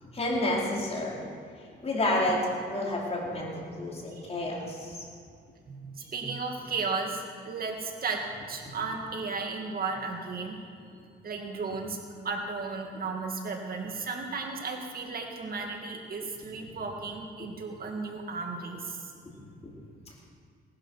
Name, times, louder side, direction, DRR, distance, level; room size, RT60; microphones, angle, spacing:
voice 1, 0.0-1.3 1.8-5.0, left 1 dB, 30° left, -3 dB, 4.5 m, -30 dB
voice 2, 5.7-10.6 11.2-12.0 12.2-19.0, right 4 dB, 50° right, 2 dB, 2.1 m, -34 dB
18.5 x 11.5 x 5.7 m, 2.2 s
cardioid pair, 90°, 20 cm